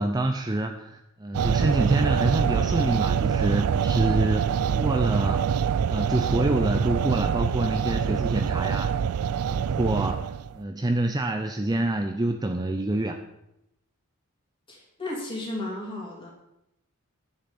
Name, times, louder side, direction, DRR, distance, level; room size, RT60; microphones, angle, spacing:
voice 1, 0.0-5.5 5.9-8.9 9.5-13.2, right 1 dB, 20° right, 6 dB, 0.5 m, -27 dB
sound 1, 1.3-10.6, right 7 dB, 80° right, 0.4 m, -25 dB
voice 2, 14.7-16.3, left 2 dB, 25° left, -2 dB, 3.0 m, -34 dB
10.5 x 6.4 x 7.2 m, 0.85 s
head